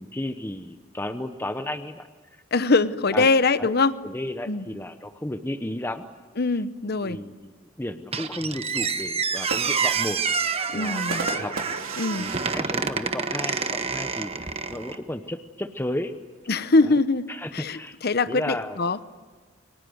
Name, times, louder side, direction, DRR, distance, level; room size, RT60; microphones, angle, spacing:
voice 1, 0.0-2.4 3.1-3.3 3.6-3.7 4.0-6.0 7.0-7.5 7.8-10.2 10.7-11.5 12.2-16.1 16.8-16.9 17.3-18.0 18.3-18.8, left 1 dB, 10° left, 8 dB, 0.9 m, -33 dB
voice 2, 2.5-3.9 4.5-4.7 6.4-7.2 10.7-11.3 12.0-12.3 16.5-19.0, left 3 dB, 50° left, 14 dB, 0.9 m, -23 dB
Squeak, 8.1-15.0, right 5 dB, 30° right, 1.3 m, -28 dB
sound 1, 9.2-13.8 14.2-14.3 14.6-15.1 15.9-17.5, right 3 dB, 70° right, 3.4 m, -38 dB
29.0 x 24.5 x 7.9 m, 1.5 s
head